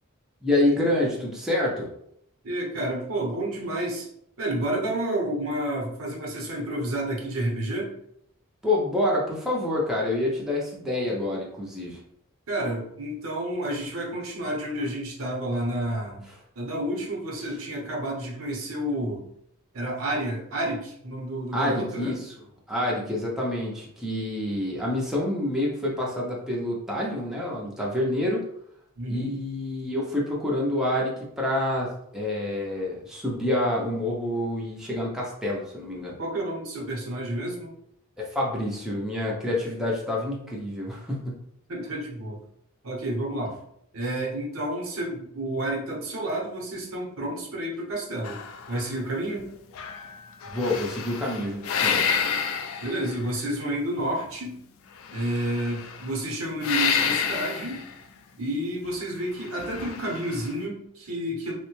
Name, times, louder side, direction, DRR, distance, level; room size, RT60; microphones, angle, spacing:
voice 1, 0.4-1.9 8.6-12.0 21.5-22.3 22.7-28.4 29.1-36.2 38.2-41.3 50.5-52.1, left 1 dB, ahead, -4 dB, 0.5 m, -27 dB
voice 2, 2.4-4.1 4.4-7.9 12.5-16.2 16.6-19.2 19.7-22.1 29.0-29.3 36.2-37.7 41.7-42.4 42.8-43.5 43.9-48.4 48.7-49.5 52.8-54.6 55.1-57.8 58.4-61.5, right 1 dB, 70° right, -1 dB, 0.8 m, -30 dB
sound 1, 48.2-49.5 49.7-53.5 55.0-56.2 56.6-57.9 59.4-60.5, left 6 dB, 65° left, 0.3 m, -29 dB
3.1 x 2.1 x 3.0 m, 0.73 s
head